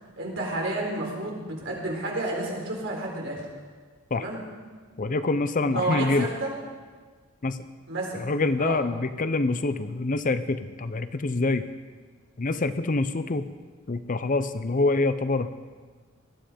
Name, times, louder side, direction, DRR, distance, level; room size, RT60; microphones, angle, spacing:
voice 1, 0.2-3.4 4.1-4.4 5.6-6.5 7.9-8.2 8.6-8.8, right 2 dB, 65° right, -2 dB, 4.2 m, -30 dB
voice 2, 5.0-6.3 7.4-7.6 8.1-11.6 12.4-13.5 13.9-15.5, left 3 dB, 40° left, 12 dB, 0.6 m, -26 dB
19.5 x 12.5 x 5.1 m, 1.4 s
head